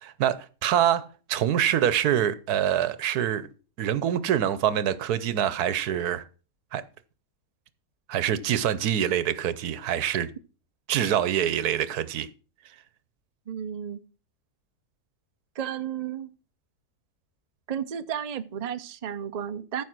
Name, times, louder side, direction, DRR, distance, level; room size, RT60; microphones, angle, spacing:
voice 1, 0.0-3.5 3.8-6.2 6.7-6.8 8.1-10.3 10.9-12.3, right 10 dB, 85° right, 1.3 m, -25 dB
voice 2, 13.5-14.0 15.6-16.3 17.7-19.8, right 9 dB, 45° right, 0.5 m, -33 dB
14.5 x 5.2 x 6.0 m
omnidirectional pair, 1.6 m